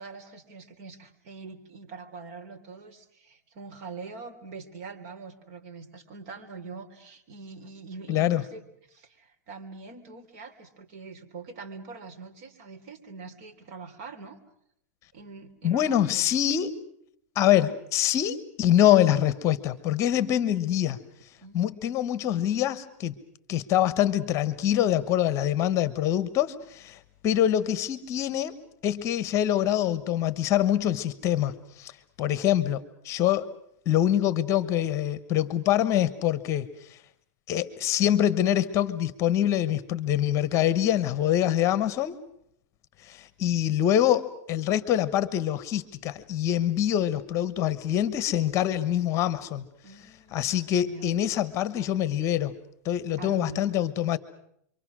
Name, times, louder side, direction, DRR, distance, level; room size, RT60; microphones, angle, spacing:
voice 1, 0.0-8.6 8.9-14.4 15.1-16.4 21.4-21.9 49.8-51.1 53.2-53.8, right 4 dB, 50° right, 5 dB, 3.5 m, -44 dB
voice 2, 8.1-8.4 15.6-16.8 17.3-21.0 21.5-23.1 23.5-28.6 28.8-31.9 32.2-33.5 33.8-37.0 37.5-42.2 43.0-49.6 50.3-52.5 52.8-54.2, left 11 dB, 35° left, 15 dB, 1.2 m, -25 dB
28.0 x 24.0 x 6.2 m, 0.72 s
supercardioid pair, 145°, 9 cm